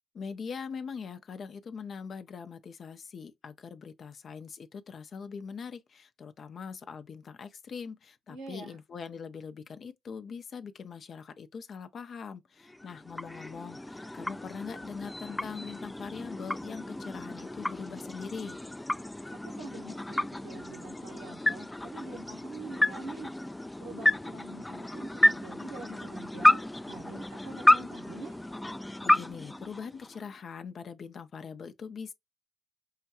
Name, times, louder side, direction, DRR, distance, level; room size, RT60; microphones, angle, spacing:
voice 1, 0.1-18.6 29.0-32.1, left 6 dB, 55° left, 0.6 m, -42 dB
voice 2, 8.3-8.8 19.4-23.3 23.8-28.4, right 3 dB, 85° right, 1.4 m, -45 dB
sound 1, 12.6-30.4, left 1 dB, 15° left, 0.4 m, -30 dB
5.6 x 2.3 x 2.8 m
hypercardioid pair, 45°, 0 cm